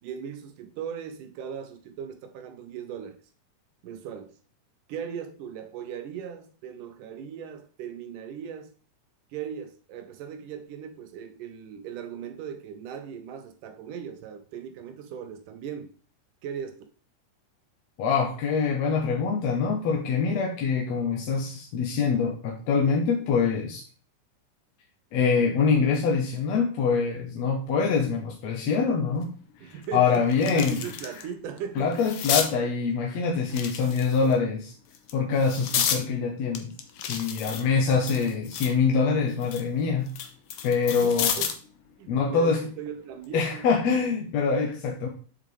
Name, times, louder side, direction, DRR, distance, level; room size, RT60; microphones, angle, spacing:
voice 1, 0.0-3.2 3.8-4.4 4.9-8.7 9.3-15.9 16.4-16.9 29.6-30.2 30.5-31.9 33.8-34.0 37.2-37.7 40.8-41.5 42.0-43.7, right 8 dB, 80° right, 2.4 m, -38 dB
voice 2, 18.0-23.8 25.1-29.3 29.6-30.8 31.8-34.7 35.1-36.7 37.0-40.1 40.6-41.5 42.1-42.6 43.3-45.1, left 5 dB, 65° left, 2.0 m, -25 dB
sound 1, 29.2-29.3 29.8-31.2 31.6-32.5 33.4-34.3 34.9-36.0 36.5-38.8 39.2-41.7 43.0-43.2, left 8 dB, 80° left, 1.2 m, -31 dB
7.7 x 7.5 x 3.3 m
omnidirectional pair, 3.8 m